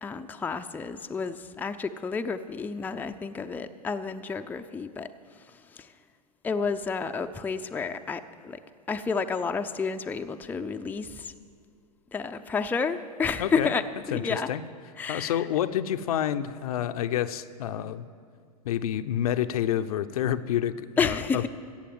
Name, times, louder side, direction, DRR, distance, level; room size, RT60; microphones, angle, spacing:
voice 1, 0.0-5.1 6.4-8.6 8.9-11.3 12.1-13.8 14.1-14.5 15.0-15.4 21.0-21.5, left 5 dB, 10° left, 7 dB, 0.5 m, -30 dB
voice 2, 13.4-13.7 14.1-14.6 15.1-18.1 18.6-21.5, left 10 dB, 65° left, 10 dB, 0.6 m, -28 dB
14.5 x 8.4 x 7.7 m, 2.2 s
hypercardioid pair, 100°, 20 cm